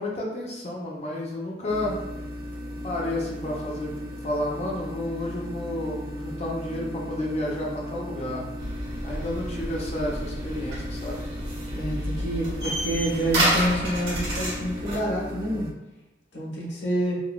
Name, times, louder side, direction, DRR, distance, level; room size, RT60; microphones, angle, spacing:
voice 1, 0.0-2.0 2.8-8.4 9.0-11.2, left 1 dB, 35° left, -3 dB, 0.6 m, -31 dB
sound 1, 1.7-15.7, left 1 dB, 55° right, 0.4 m, -37 dB
sound 2, 8.6-15.0, right 1 dB, 70° right, 1.3 m, -30 dB
voice 2, 11.7-15.7 16.3-17.2, right 1 dB, 90° left, -6 dB, 1.3 m, -27 dB
3.7 x 2.3 x 2.3 m, 1.0 s
head